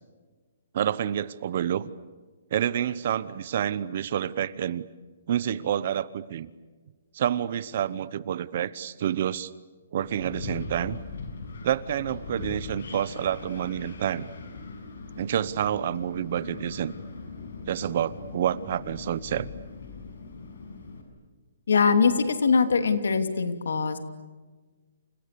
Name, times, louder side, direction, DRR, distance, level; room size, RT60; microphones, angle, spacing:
voice 1, 0.7-1.9 2.5-4.9 5.3-6.5 7.1-9.5 9.9-11.0 11.6-14.3 15.2-16.9 17.7-19.5, right 10 dB, 40° right, 18 dB, 0.9 m, -28 dB
Wind, 10.0-21.0, left 4 dB, 60° left, 6.8 m, -40 dB
voice 2, 21.7-24.0, left 5 dB, 90° left, 8 dB, 3.0 m, -22 dB
29.5 x 29.0 x 6.9 m, 1.3 s
hypercardioid pair, 175°, 0 cm